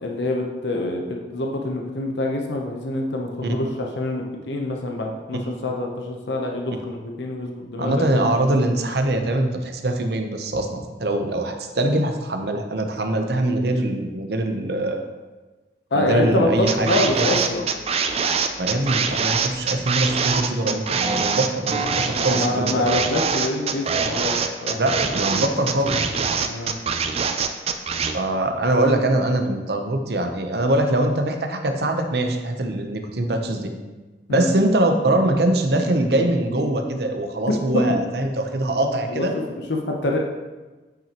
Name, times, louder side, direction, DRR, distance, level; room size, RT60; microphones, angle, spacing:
voice 1, 0.0-8.1 15.9-17.7 22.2-24.8 26.4-26.7 34.3-34.5 39.1-39.4 39.7-40.2, left 1 dB, 80° left, 1 dB, 0.8 m, -25 dB
voice 2, 7.8-15.0 15.9-17.3 18.6-22.8 24.8-26.1 28.1-33.7 34.3-39.3, right 1 dB, 60° right, 5 dB, 0.8 m, -23 dB
sound 1, 16.7-28.1, right 5 dB, 35° right, 0.4 m, -23 dB
8.8 x 5.8 x 3.0 m, 1.2 s
head